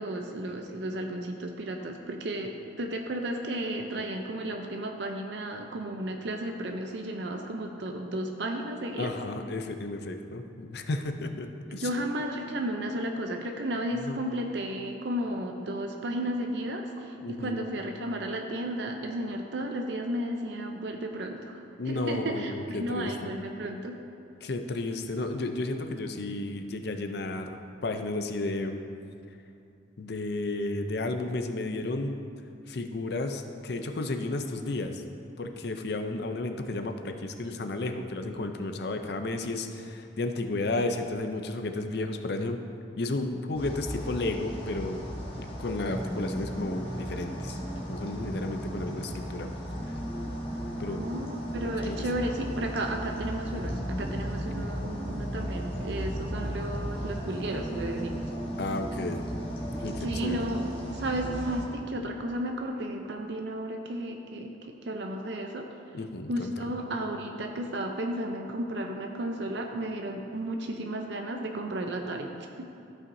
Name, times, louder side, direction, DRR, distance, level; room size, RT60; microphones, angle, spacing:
voice 1, 0.0-2.5 2.8-9.1 11.7-24.0 50.9-58.3 60.0-65.7 66.3-72.3 72.6-72.7, right 1 dB, 65° right, 3 dB, 0.6 m, -33 dB
voice 2, 9.0-11.9 14.0-14.2 17.2-17.6 21.8-23.1 24.4-28.8 30.0-32.2 32.7-35.0 35.4-42.6 43.0-45.0 45.4-47.6 47.9-49.5 50.8-51.0 51.8-52.0 58.6-59.2 59.8-60.4 65.9-66.5, left 2 dB, 60° left, 6 dB, 0.5 m, -32 dB
sound 1, 43.5-61.7, equal, 30° left, 1.2 m, -37 dB
sound 2, 45.9-61.4, equal, ahead, 0.4 m, -39 dB
14.0 x 5.8 x 2.7 m, 2.6 s
head